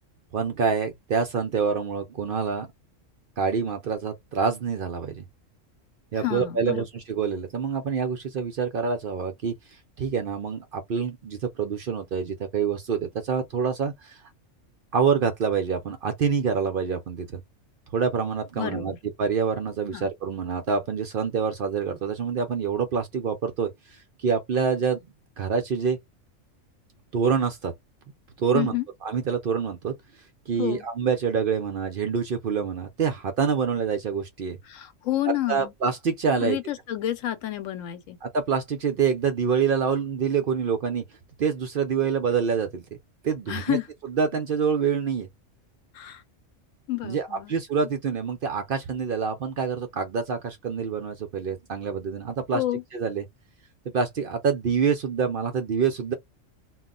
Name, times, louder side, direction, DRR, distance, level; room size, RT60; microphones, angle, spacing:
voice 1, 0.3-2.7 3.4-5.2 6.1-9.5 10.0-14.2 14.9-17.4 17.9-18.9 19.2-25.1 25.4-26.0 27.1-27.7 28.4-28.7 29.0-29.9 30.5-34.6 35.5-36.6 38.2-41.0 41.4-42.8 43.2-43.8 44.1-45.3 47.0-52.6 52.9-53.2 53.9-56.1, right 6 dB, 55° right, 0.6 m, -26 dB
voice 2, 6.2-6.9 18.6-19.0 19.9-20.1 28.5-28.8 30.6-30.8 34.7-35.7 36.4-38.2 43.5-43.9 45.9-46.2 46.9-47.5 52.5-52.8, left 14 dB, 80° left, 1.0 m, -29 dB
2.3 x 2.1 x 3.7 m
omnidirectional pair, 1.3 m